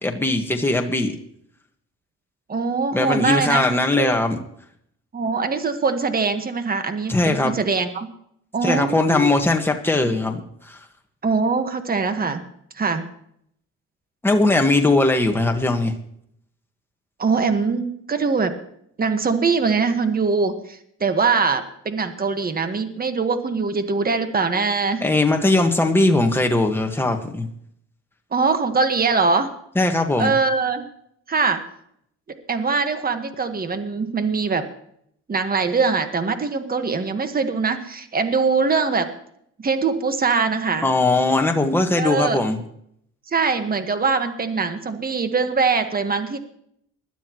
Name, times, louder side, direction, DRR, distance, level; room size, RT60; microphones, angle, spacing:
voice 1, 0.0-1.1 2.9-4.4 7.1-7.5 8.6-10.4 10.7-10.8 14.2-15.9 25.0-27.5 29.7-30.3 40.8-42.6, left 2 dB, 5° left, 3 dB, 1.6 m, -19 dB
voice 2, 2.5-4.1 5.1-8.1 8.5-9.3 10.0-10.1 11.2-12.4 12.7-13.1 17.2-18.5 19.0-25.0 28.3-29.5 30.2-30.8 31.3-31.6 32.5-34.7 35.3-39.1 39.6-40.9 41.9-42.4 43.3-46.4, right 4 dB, 30° right, 7 dB, 1.6 m, -22 dB
20.5 x 12.5 x 3.1 m, 0.69 s
cardioid pair, 90°, 30 cm